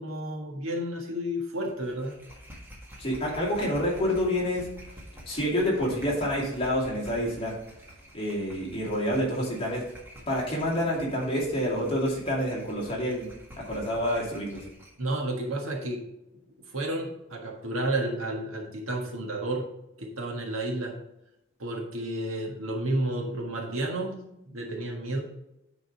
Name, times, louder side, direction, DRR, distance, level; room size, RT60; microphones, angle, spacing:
voice 1, 0.0-2.2 15.0-16.0 16.7-19.7 20.0-20.9 21.6-24.2 24.5-25.2, right 1 dB, 80° right, 0 dB, 1.6 m, -31 dB
sound 1, 1.6-15.0, equal, 10° right, 1.6 m, -48 dB
voice 2, 3.0-4.7 5.3-7.5 8.1-9.8 10.3-13.3 13.6-14.6, equal, 25° left, -4 dB, 2.4 m, -28 dB
9.4 x 4.0 x 4.6 m, 0.86 s
head